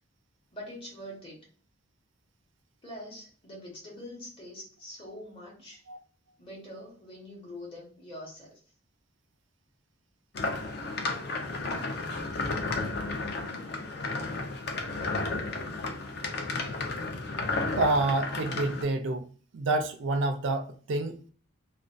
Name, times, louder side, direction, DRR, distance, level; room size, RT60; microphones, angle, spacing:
voice 1, 0.5-1.4 2.8-5.8 6.4-8.6, left 1 dB, 25° left, 1.0 m, -44 dB
sound 1, 10.3-18.8, left 3 dB, 50° left, 0.4 m, -33 dB
voice 2, 17.8-19.3 19.5-21.3, right 2 dB, 60° right, 0.3 m, -28 dB
2.4 x 2.2 x 2.4 m
head